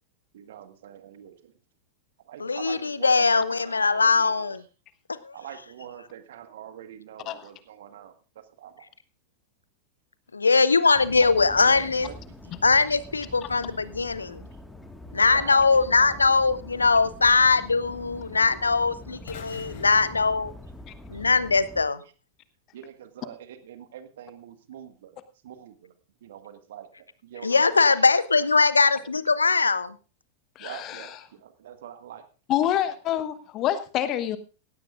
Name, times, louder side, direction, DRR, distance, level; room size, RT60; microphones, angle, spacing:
voice 1, 0.3-1.5 2.3-4.6 5.3-8.8 11.6-12.5 15.2-16.4 21.1-21.2 22.7-25.9 26.2-26.9 27.2-28.1 28.9-29.1 30.6-32.2 32.6-33.0, right 10 dB, 60° right, 9 dB, 1.6 m, -44 dB
voice 2, 2.4-4.6 5.2-5.4 10.3-12.1 12.6-14.4 15.1-20.5 21.1-22.0 27.4-29.9, left 4 dB, 75° left, 17 dB, 0.7 m, -21 dB
sound 1, 10.9-21.8, left 1 dB, 5° left, 1.8 m, -44 dB
sound 2, 19.3-21.4, left 5 dB, 55° left, 3.8 m, -45 dB
voice 3, 30.6-31.1 32.5-34.4, left 11 dB, 35° left, 13 dB, 1.3 m, -27 dB
17.5 x 16.0 x 2.5 m, 0.33 s
figure-of-eight pair, 90°, 0 cm